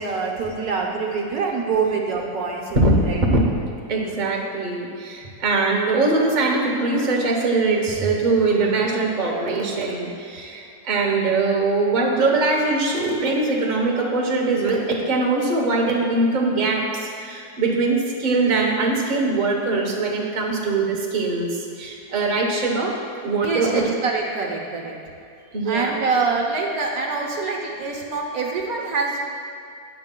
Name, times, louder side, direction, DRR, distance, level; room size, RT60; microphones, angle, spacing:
voice 1, 0.0-3.2 23.4-24.9 25.7-29.2, right 4 dB, 65° right, 0 dB, 1.4 m, -25 dB
voice 2, 3.9-23.9 25.5-26.0, right 3 dB, 35° right, -1 dB, 0.9 m, -22 dB
12.5 x 9.1 x 2.3 m, 2.5 s
omnidirectional pair, 1.7 m